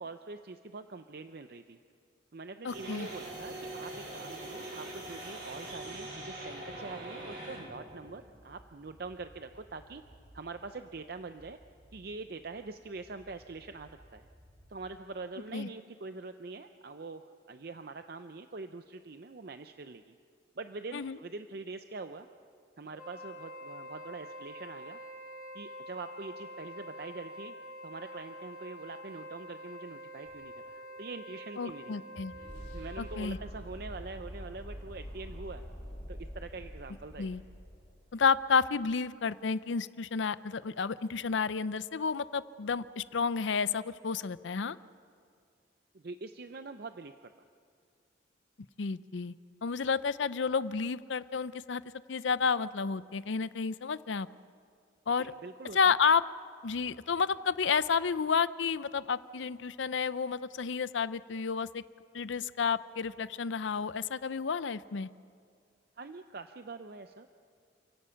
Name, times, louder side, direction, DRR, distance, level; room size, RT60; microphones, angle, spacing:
voice 1, 0.0-1.8 2.3-10.0 10.3-11.6 11.9-14.3 14.7-20.1 20.6-22.3 22.8-25.0 25.5-27.5 27.8-31.9 32.4-35.7 36.1-37.3 45.9-47.3 55.2-55.9 66.0-67.3, right 3 dB, 55° right, 8 dB, 0.6 m, -44 dB
voice 2, 2.6-3.1 15.5-15.7 20.9-21.2 31.6-32.3 33.0-33.4 37.2-37.4 38.1-44.8 48.8-49.3 49.6-51.8 52.1-54.3 55.1-55.3 55.7-56.2 56.6-61.8 62.1-65.1, left 5 dB, 80° left, 16 dB, 0.6 m, -31 dB
sound 1, 2.7-14.8, right 1 dB, 70° right, 7.9 m, -46 dB
Wind instrument woodwind instrument, 22.9-33.5, equal, 5° right, 5.4 m, -47 dB
sound 2, 30.3-38.4, equal, 40° left, 3.6 m, -46 dB
29.0 x 17.0 x 5.7 m, 2.2 s
head